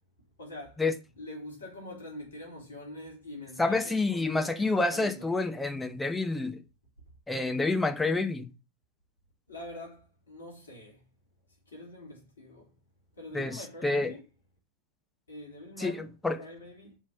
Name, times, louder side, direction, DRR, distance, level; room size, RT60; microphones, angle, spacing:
voice 1, 0.4-0.8 1.2-5.3 9.5-11.0 11.7-12.7 13.1-14.2 15.3-16.1 16.4-17.0, left 1 dB, 70° left, 3.5 m, -44 dB
voice 2, 3.6-6.6 7.3-8.5 13.3-14.1 15.8-16.4, left 3 dB, 5° left, 0.9 m, -28 dB
5.4 x 5.3 x 5.1 m
figure-of-eight pair, 90°, 0 cm